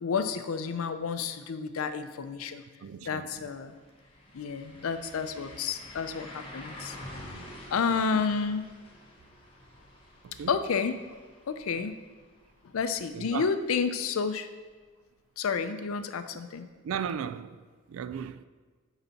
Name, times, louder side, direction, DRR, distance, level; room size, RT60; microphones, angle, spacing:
voice 1, 0.0-2.6 3.0-3.7 4.3-7.0 7.7-8.6 10.5-11.0 11.5-11.9 12.7-14.5 15.4-16.7, left 5 dB, 90° left, 0.5 m, -30 dB
voice 2, 2.8-3.5 7.3-7.5 7.9-8.2 10.2-10.6 13.1-13.6 16.8-17.6 17.9-18.5, right 7 dB, 80° right, 0.3 m, -37 dB
sound 1, 3.3-3.4 3.7-13.5 13.8-13.9 16.7-16.8, left 1 dB, 25° left, 1.0 m, -48 dB
9.9 x 4.0 x 4.1 m
head